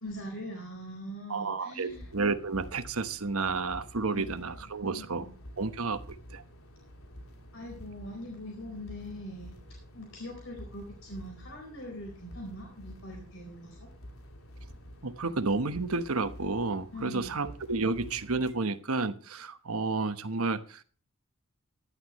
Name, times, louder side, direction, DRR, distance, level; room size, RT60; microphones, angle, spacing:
voice 1, 0.0-2.0 4.1-4.2 4.8-5.3 7.5-9.6 9.9-13.9 16.9-17.4, equal, 65° left, 1 dB, 4.3 m, -42 dB
voice 2, 1.3-5.3 5.6-6.4 15.0-20.8, right 3 dB, 85° right, 10 dB, 1.1 m, -31 dB
sound 1, 1.9-18.5, equal, 85° left, 2.6 m, -49 dB
16.0 x 11.5 x 3.0 m, 0.38 s
head